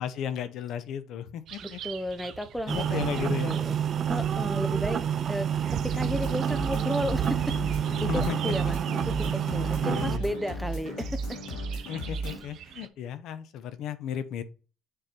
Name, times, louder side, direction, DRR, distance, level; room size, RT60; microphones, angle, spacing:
voice 1, 0.0-1.8 2.7-3.6 8.1-8.5 9.6-10.2 11.8-14.4, left 9 dB, 65° left, 0.7 m, -34 dB
sound 1, 1.5-12.9, right 8 dB, 60° right, 0.8 m, -41 dB
voice 2, 1.6-3.8 4.1-8.8 9.0-11.4 12.2-12.4, equal, ahead, 0.6 m, -34 dB
sound 2, 2.7-10.2, right 9 dB, 40° right, 0.4 m, -29 dB
sound 3, 5.9-12.4, right 1 dB, 85° left, 2.2 m, -35 dB
6.6 x 3.9 x 4.5 m
cardioid pair, 110°, 0 cm